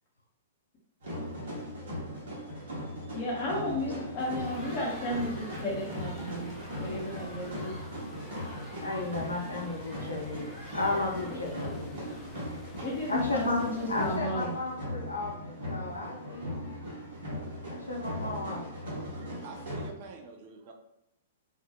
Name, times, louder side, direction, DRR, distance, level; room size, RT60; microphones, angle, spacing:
sound 1, 1.0-19.9, equal, 65° right, 1.0 m, -39 dB
voice 1, 3.1-7.7 11.3-11.4 12.8-14.5, left 1 dB, 30° left, -6 dB, 0.8 m, -33 dB
sound 2, 4.2-14.2, left 2 dB, 15° left, 0.3 m, -53 dB
Cheering, 4.3-12.5, left 1 dB, 20° right, 1.3 m, -49 dB
voice 2, 8.8-12.6 13.0-16.7 17.6-18.9, left 2 dB, 90° left, -1 dB, 0.4 m, -34 dB
voice 3, 19.1-20.7, right 4 dB, 45° right, 3 dB, 0.5 m, -46 dB
2.3 x 2.2 x 2.8 m, 0.82 s
figure-of-eight pair, 110°, 0 cm